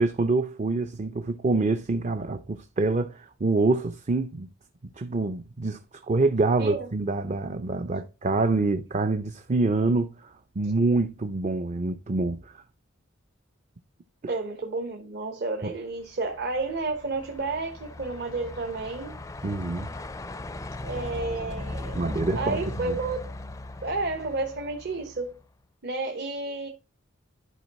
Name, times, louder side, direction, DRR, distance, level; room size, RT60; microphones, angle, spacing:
voice 1, 0.0-4.5 5.0-5.8 6.1-12.6 14.2-14.3 15.6-15.7 19.4-19.9 21.9-23.0, right 3 dB, 35° right, 0.5 m, -26 dB
voice 2, 14.3-19.2 20.8-22.1 22.3-23.2 23.8-25.4 25.8-26.7, right 3 dB, 55° right, 1.1 m, -31 dB
Truck, 16.0-25.4, left 2 dB, 15° left, 0.4 m, -38 dB
11.0 x 4.6 x 4.1 m
head